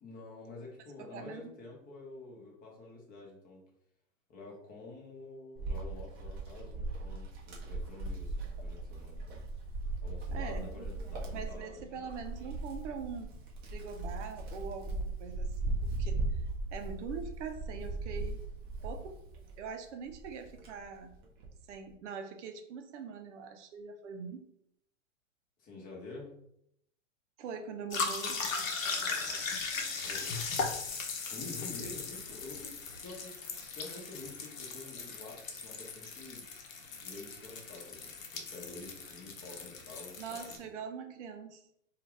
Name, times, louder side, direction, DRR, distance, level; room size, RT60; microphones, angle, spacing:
voice 1, 0.0-3.6 4.3-9.4 10.0-12.1 25.6-26.3 28.9-29.4 29.7-30.7 31.3-33.3 33.7-36.5 37.0-40.2 40.5-40.6, left 3 dB, 25° left, -2 dB, 0.9 m, -48 dB
voice 2, 1.0-1.4 10.3-10.7 11.3-13.4 13.7-16.2 16.7-18.4 18.8-19.2 19.6-21.1 21.7-24.4 27.4-28.4 40.2-41.6, right 6 dB, 65° right, 6 dB, 0.6 m, -43 dB
Wind, 5.5-19.7 20.1-21.6, right 2 dB, 25° right, 0.6 m, -38 dB
sound 1, 27.9-40.6, left 4 dB, 90° left, 0.8 m, -38 dB
2.8 x 2.4 x 3.1 m, 0.73 s
hypercardioid pair, 130°, 39 cm